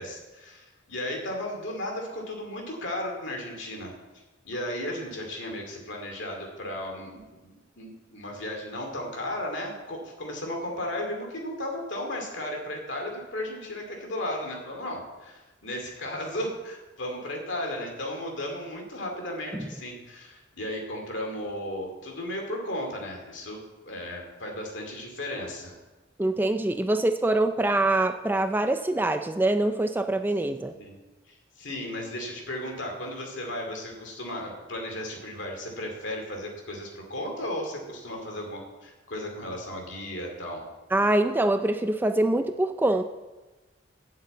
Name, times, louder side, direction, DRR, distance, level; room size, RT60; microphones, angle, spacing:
voice 1, 0.0-3.9 4.4-25.8 30.8-31.0 31.3-40.6, left 1 dB, 65° left, 1 dB, 2.5 m, -35 dB
voice 2, 26.2-30.7 40.9-43.0, right 2 dB, 10° right, 8 dB, 0.4 m, -24 dB
8.0 x 6.6 x 8.2 m, 1.1 s
head